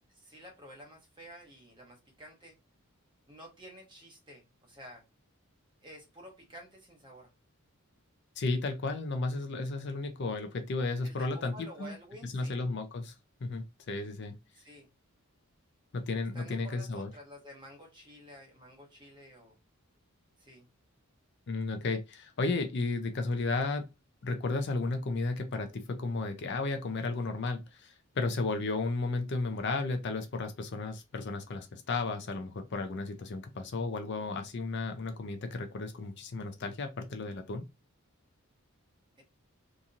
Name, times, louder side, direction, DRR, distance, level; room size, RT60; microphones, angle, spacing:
voice 1, 0.0-2.6 3.3-5.0 5.8-7.3 11.0-12.6 14.5-14.9 16.3-19.6 20.4-20.7 39.2-39.3, equal, 20° right, 1.0 m, -51 dB
voice 2, 8.4-11.5 11.8-11.9 12.3-13.1 13.4-14.4 15.9-17.1 21.5-23.9 24.2-37.6, left 3 dB, 55° left, 0.4 m, -33 dB
2.8 x 2.6 x 2.4 m
head